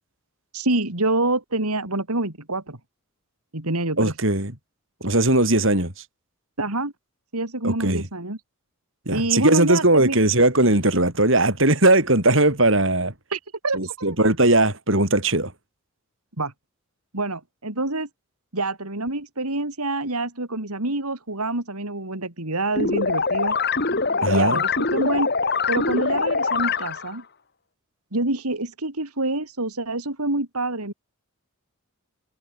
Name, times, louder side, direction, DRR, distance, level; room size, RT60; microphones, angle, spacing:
voice 1, 0.5-2.8 3.5-4.1 6.6-6.9 7.3-8.4 9.1-10.2 13.3-14.2 16.4-16.5 17.1-18.1 18.5-23.6 24.2-25.3 25.7-27.2 28.1-30.9, right 2 dB, 90° right, 4.2 m, -26 dB
voice 2, 4.0-4.5 5.0-5.9 7.6-8.0 9.1-13.1 13.7-15.5 24.2-24.6, right 2 dB, 60° right, 5.4 m, -19 dB
sound 1, 22.8-27.2, left 4 dB, 45° left, 1.9 m, -23 dB
head